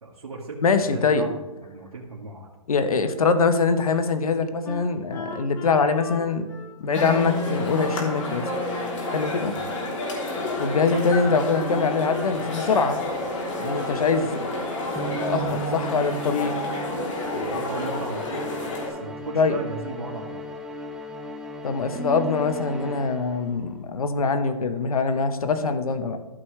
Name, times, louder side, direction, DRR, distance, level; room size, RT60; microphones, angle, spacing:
voice 1, 0.0-0.6 0.9-2.5 9.4-9.7 17.2-18.5 18.8-20.5, right 3 dB, 90° right, -3 dB, 1.8 m, -36 dB
voice 2, 0.6-1.3 2.7-6.4 6.8-8.4 9.1-9.5 10.6-13.0 13.6-14.5 15.3-16.6 19.3-19.6 21.6-26.2, left 4 dB, 80° left, 9 dB, 1.2 m, -23 dB
Wind instrument woodwind instrument, 4.6-8.1 8.4-9.5 10.0-11.2 11.6-12.0, left 1 dB, 15° left, 1.7 m, -40 dB
sound 1, 6.9-18.9, left 2 dB, 60° left, 3.4 m, -30 dB
sound 2, 7.0-23.7, equal, 5° right, 0.5 m, -36 dB
14.0 x 6.2 x 3.3 m, 1.2 s
hypercardioid pair, 145°, 18 cm